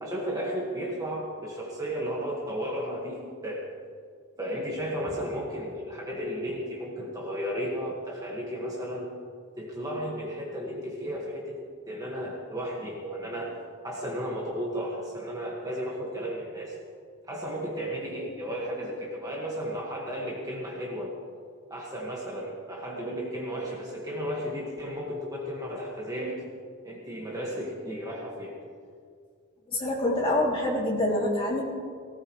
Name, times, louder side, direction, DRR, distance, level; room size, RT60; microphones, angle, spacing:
voice 1, 0.0-3.7 4.4-9.1 9.6-11.6 11.9-13.5 13.8-16.8 17.3-21.1 21.7-26.5 26.8-28.6, equal, 15° right, -3 dB, 1.7 m, -34 dB
voice 2, 29.7-31.6, left 1 dB, 25° left, -4 dB, 2.9 m, -26 dB
18.5 x 18.0 x 3.2 m, 2.1 s
head